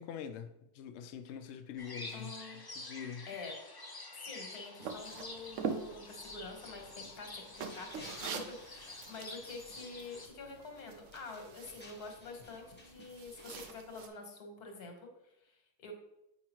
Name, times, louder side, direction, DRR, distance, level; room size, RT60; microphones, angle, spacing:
voice 1, 0.0-2.3 2.7-3.3, left 8 dB, 70° left, 0.7 m, -44 dB
sound 1, 1.8-10.3, left 2 dB, 40° left, 0.3 m, -48 dB
voice 2, 2.1-2.7 3.3-3.5 4.1-15.9, left 3 dB, 85° left, 1.7 m, -47 dB
sound 2, 4.8-14.1, right 6 dB, 65° right, 0.9 m, -45 dB
sound 3, 5.1-13.7, left 1 dB, 10° left, 0.7 m, -58 dB
8.3 x 4.8 x 3.0 m
omnidirectional pair, 1.6 m